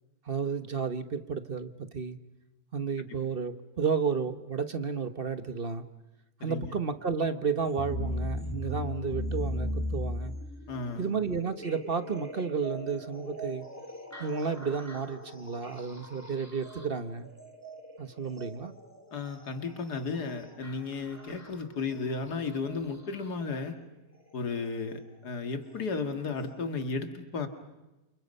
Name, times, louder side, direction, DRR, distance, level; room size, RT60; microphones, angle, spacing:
voice 1, 0.2-2.2 2.7-5.9 6.4-10.3 11.0-13.6 14.2-17.3 18.0-18.7, right 5 dB, 40° right, 10 dB, 1.2 m, -32 dB
voice 2, 6.4-6.8 10.7-11.1 19.1-23.8 24.3-27.5, left 4 dB, 80° left, 7 dB, 2.5 m, -34 dB
sound 1, 7.6-23.5 24.7-24.8 25.6-25.7 26.4-26.5, left 1 dB, 10° left, 3.0 m, -39 dB
29.5 x 28.0 x 5.5 m, 1.0 s
omnidirectional pair, 1.7 m